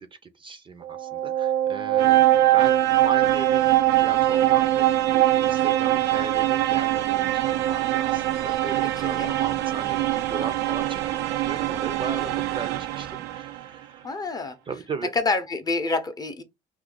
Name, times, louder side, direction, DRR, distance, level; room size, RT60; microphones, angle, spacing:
voice 1, 0.0-3.6 4.0-14.0 14.7-15.1, right 4 dB, 30° right, 0.5 m, -37 dB
sound 1, 0.8-13.6, right 14 dB, 80° right, 0.4 m, -22 dB
voice 2, 8.8-9.3 12.3-12.4 14.0-14.6 15.1-16.4, left 3 dB, 25° left, 0.6 m, -28 dB
2.7 x 2.5 x 3.8 m
cardioid pair, 110°, 17 cm